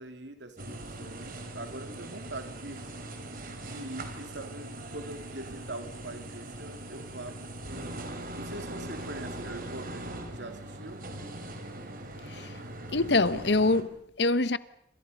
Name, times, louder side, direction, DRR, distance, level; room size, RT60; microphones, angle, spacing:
voice 1, 0.0-2.9 3.3-7.4 7.6-7.9 8.3-11.0, right 2 dB, 70° right, 3.1 m, -43 dB
sound 1, 0.6-13.8, right 1 dB, 50° right, 3.5 m, -41 dB
voice 2, 12.3-12.6 12.9-14.6, left 2 dB, 65° left, 1.0 m, -25 dB
27.5 x 26.5 x 5.4 m
head